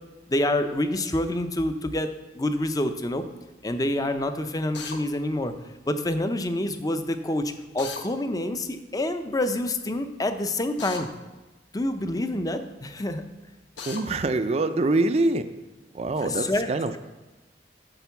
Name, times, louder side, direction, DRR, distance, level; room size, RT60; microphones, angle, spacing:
voice 1, 0.3-2.1 2.3-3.2 3.6-5.5 5.9-11.1 11.7-13.2 16.2-17.0, left 1 dB, 20° left, 8 dB, 0.5 m, -27 dB
Drill, 4.7-5.0 7.8-8.1 10.8-11.1 13.8-14.0, left 4 dB, 85° left, 1.1 m, -36 dB
voice 2, 13.9-15.5 15.9-17.0, right 2 dB, 35° right, 10 dB, 0.4 m, -24 dB
8.9 x 4.5 x 6.9 m, 1.2 s
head